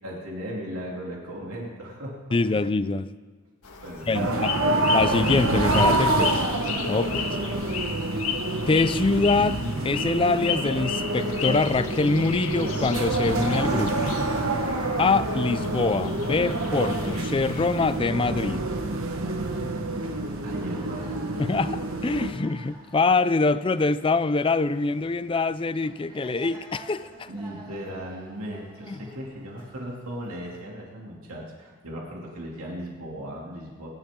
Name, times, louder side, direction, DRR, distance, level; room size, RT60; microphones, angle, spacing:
voice 1, 0.0-2.2 2.5-2.6 3.8-4.4 20.4-21.4 27.3-33.9, equal, 80° right, -2 dB, 2.7 m, -37 dB
voice 2, 2.3-3.1 4.1-4.5 4.9-6.4 6.9-7.4 8.6-14.0 15.0-18.6 21.4-21.7 22.0-27.3 28.9-29.0, left 3 dB, 25° left, 15 dB, 0.4 m, -24 dB
sound 1, 3.6-18.0, left 6 dB, 75° left, 1.8 m, -35 dB
sound 2, 4.1-22.3, right 2 dB, 65° right, 1.3 m, -27 dB
sound 3, 20.6-30.6, right 2 dB, 20° right, 3.3 m, -50 dB
23.0 x 12.0 x 3.7 m, 1.4 s
head